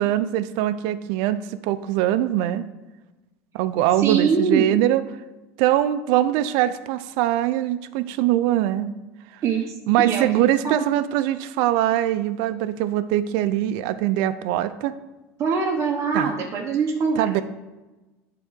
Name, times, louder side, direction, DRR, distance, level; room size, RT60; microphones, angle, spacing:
voice 1, 0.0-2.6 3.5-5.0 5.6-8.9 9.9-14.9 16.1-16.3 17.2-17.4, right 13 dB, 70° right, 12 dB, 0.5 m, -22 dB
voice 2, 4.0-4.7 9.4-10.8 15.4-17.3, right 5 dB, 40° right, -1 dB, 1.0 m, -23 dB
9.9 x 3.8 x 6.3 m, 1.1 s
supercardioid pair, 110°, 8 cm